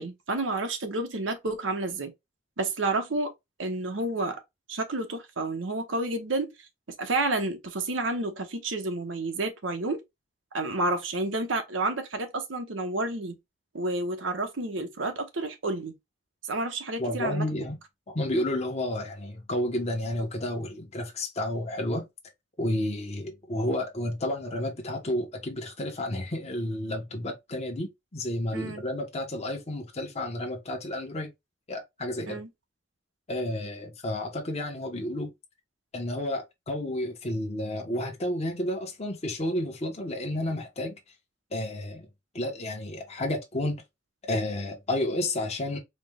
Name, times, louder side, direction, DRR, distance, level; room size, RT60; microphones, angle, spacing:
voice 1, 0.0-2.1 2.6-3.3 3.6-4.4 4.7-6.5 7.0-10.0 10.5-13.4 13.7-16.0 16.5-17.4 28.5-28.8 32.3-32.5, right 2 dB, 85° right, 0.9 m, -30 dB
voice 2, 17.0-17.8 18.1-22.0 22.6-31.3 31.7-32.4 33.3-35.3 35.9-40.9 41.5-42.1 42.3-43.8 44.3-45.8, left 1 dB, 35° left, 1.0 m, -31 dB
4.3 x 2.2 x 3.4 m
head